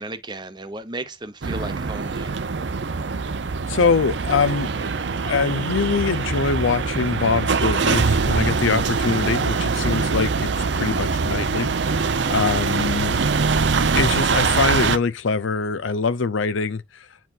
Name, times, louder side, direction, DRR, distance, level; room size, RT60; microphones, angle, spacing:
voice 1, 0.0-2.4, right 2 dB, 25° right, 0.9 m, -34 dB
sound 1, 1.4-15.0, right 4 dB, 65° right, 0.6 m, -23 dB
voice 2, 3.7-4.7 5.2-10.5 10.7-13.2 13.9-16.8, left 4 dB, 85° left, 0.6 m, -23 dB
Brass instrument, 3.8-10.2, right 2 dB, 55° left, 1.6 m, -47 dB
9.1 x 4.6 x 2.5 m
head